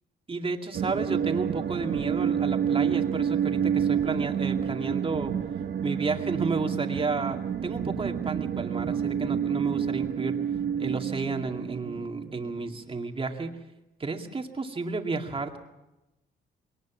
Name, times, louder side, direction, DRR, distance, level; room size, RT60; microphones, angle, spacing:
voice 1, 0.3-5.3 5.8-10.4 10.8-13.6 14.0-15.6, right 4 dB, 25° right, 4 dB, 2.2 m, -32 dB
sound 1, 0.7-12.7, right 8 dB, 55° right, 1.0 m, -29 dB
21.5 x 19.0 x 7.2 m, 0.96 s
cardioid pair, 90°, 20 cm